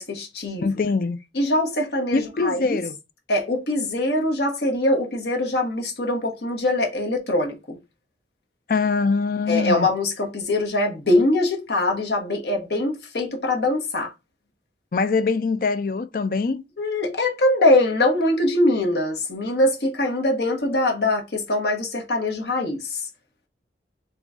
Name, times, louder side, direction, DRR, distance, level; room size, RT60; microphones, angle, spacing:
voice 1, 0.0-0.7 1.3-2.8 3.3-7.8 9.5-14.1 16.8-23.1, left 1 dB, 70° left, 1.2 m, -23 dB
voice 2, 0.6-1.2 2.1-3.0 8.7-9.9 14.9-16.6, left 4 dB, 50° left, 0.4 m, -23 dB
3.8 x 3.1 x 3.6 m
head